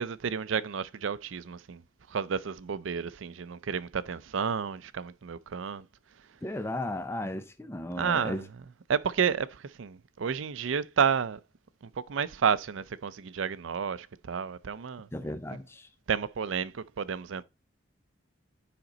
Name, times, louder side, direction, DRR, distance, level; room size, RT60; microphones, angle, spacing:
voice 1, 0.0-1.8 2.1-5.8 8.0-8.5 8.9-11.4 12.0-15.1 15.5-15.6 16.1-17.4, right 6 dB, 75° right, 0.5 m, -31 dB
voice 2, 6.4-8.4 15.1-15.9, left 1 dB, 10° left, 0.5 m, -35 dB
8.7 x 5.1 x 3.9 m
head